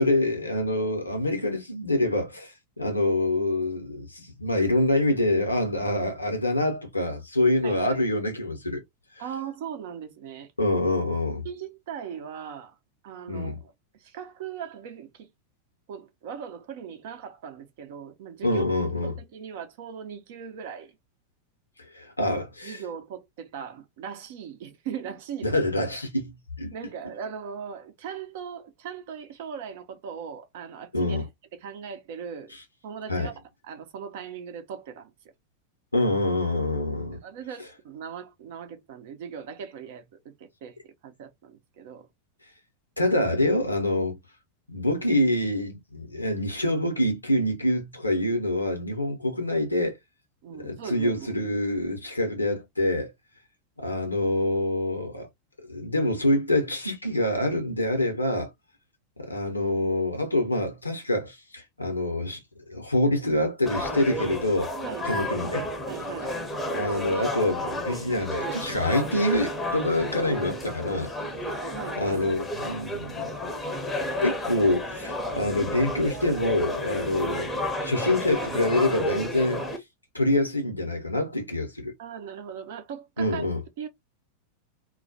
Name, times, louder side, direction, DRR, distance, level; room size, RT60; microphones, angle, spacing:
voice 1, 0.0-8.8 10.6-11.4 13.3-13.6 18.4-19.2 21.9-22.8 25.4-26.7 30.9-31.3 33.1-33.3 35.9-37.2 43.0-44.2 44.7-49.9 50.6-53.1 53.8-55.3 55.7-58.5 59.2-62.4 62.7-64.7 65.0-65.6 66.7-71.1 72.0-73.3 74.2-77.5 77.8-79.7 80.1-81.9 83.2-83.6, left 1 dB, 85° left, 0.7 m, -26 dB
voice 2, 7.6-8.0 9.2-10.5 11.2-12.7 13.0-13.7 14.0-15.3 15.9-18.7 19.0-20.9 22.3-25.6 26.7-32.5 32.8-33.3 33.6-35.1 37.1-42.1 50.4-51.5 64.8-65.3 65.9-66.3 71.7-72.3 82.0-83.5 83.8-83.9, right 7 dB, 50° right, 0.6 m, -39 dB
sound 1, 63.7-79.8, left 1 dB, 10° left, 0.7 m, -31 dB
2.3 x 2.1 x 2.6 m
figure-of-eight pair, 90°, 0 cm